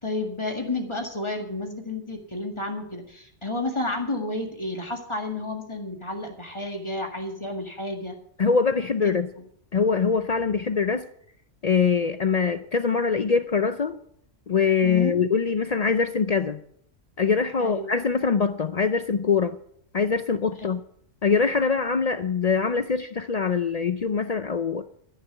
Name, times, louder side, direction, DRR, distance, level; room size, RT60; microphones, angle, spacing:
voice 1, 0.0-8.1 9.0-9.2 14.8-15.2 17.6-17.9 20.6-20.7, left 2 dB, 20° left, 1.9 m, -31 dB
voice 2, 8.4-9.3 9.7-11.0 11.6-14.0 14.5-16.6 17.2-19.6 19.9-20.8 21.2-24.9, left 5 dB, 65° left, 0.4 m, -23 dB
13.5 x 6.8 x 8.0 m
omnidirectional pair, 1.4 m